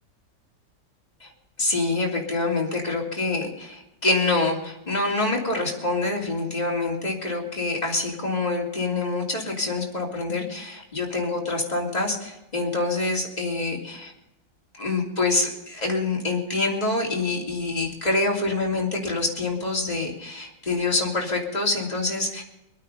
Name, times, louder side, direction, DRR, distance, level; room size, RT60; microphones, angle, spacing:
voice 1, 1.6-14.1 14.7-22.4, left 3 dB, 20° left, -2 dB, 3.2 m, -26 dB
23.5 x 9.2 x 5.5 m, 0.91 s
omnidirectional pair, 1.9 m